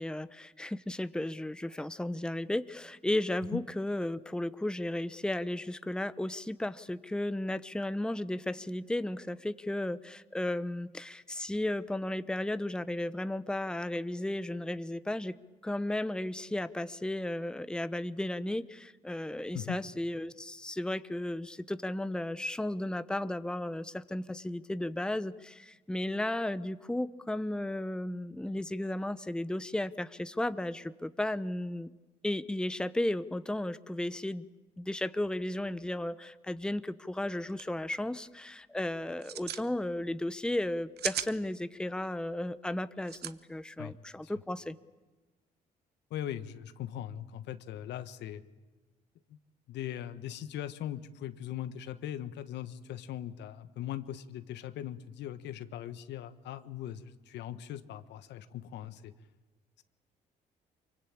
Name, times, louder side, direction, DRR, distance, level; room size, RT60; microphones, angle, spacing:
voice 1, 0.0-15.3 15.6-31.9 32.2-34.5 34.8-44.8, left 1 dB, 5° left, 14 dB, 0.9 m, -34 dB
sound 1, 37.2-37.3 37.5-37.6 37.9-38.3 39.1-39.7 40.7-41.3 43.0-43.3, right 10 dB, 65° right, 1.1 m, -36 dB
voice 2, 46.1-48.4 49.3-49.4 49.7-59.1, left 11 dB, 75° left, 12 dB, 1.4 m, -40 dB
24.5 x 23.5 x 8.6 m, 1.2 s
supercardioid pair, 60°, 18 cm